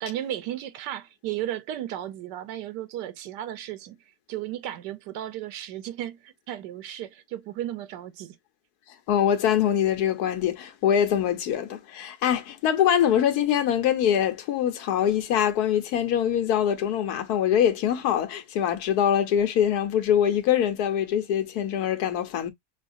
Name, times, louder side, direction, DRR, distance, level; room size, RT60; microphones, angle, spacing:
voice 1, 0.0-4.0 4.3-8.4, right 12 dB, 90° right, 1.3 m, -34 dB
voice 2, 9.1-22.5, left 9 dB, 70° left, 1.3 m, -23 dB
6.4 x 2.3 x 2.5 m
omnidirectional pair, 1.8 m